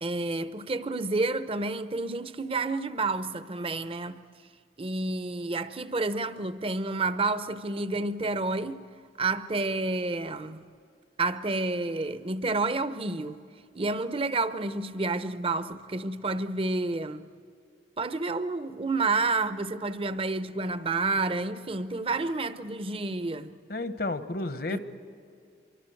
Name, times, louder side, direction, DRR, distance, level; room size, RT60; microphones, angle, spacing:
voice 1, 0.0-4.2 4.8-8.8 9.2-10.6 11.2-13.4 13.7-17.3 18.0-23.5 24.7-24.8, right 3 dB, 30° right, 0.7 m, -29 dB
voice 2, 23.7-24.8, left 2 dB, 55° left, 1.1 m, -31 dB
26.0 x 24.0 x 7.8 m
head